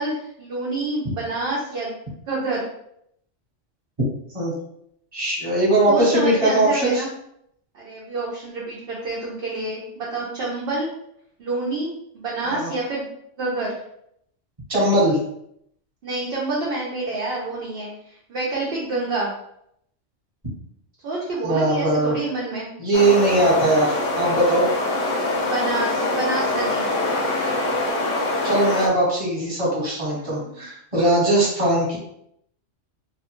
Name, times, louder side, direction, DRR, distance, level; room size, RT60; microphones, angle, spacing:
voice 1, 0.0-2.0 2.3-2.6 5.9-7.1 7.7-10.9 11.4-13.1 13.4-13.8 16.0-19.3 21.0-22.7 25.4-26.9 30.1-30.6, right 2 dB, 60° right, -4 dB, 0.7 m, -28 dB
voice 2, 5.1-7.0 12.4-12.7 14.7-15.2 21.4-22.2 22.8-24.6 28.4-32.0, right 1 dB, 30° right, -6 dB, 1.1 m, -20 dB
sound 1, 22.9-28.9, left 2 dB, 80° left, 1.0 m, -24 dB
2.7 x 2.2 x 2.9 m, 0.74 s
omnidirectional pair, 1.3 m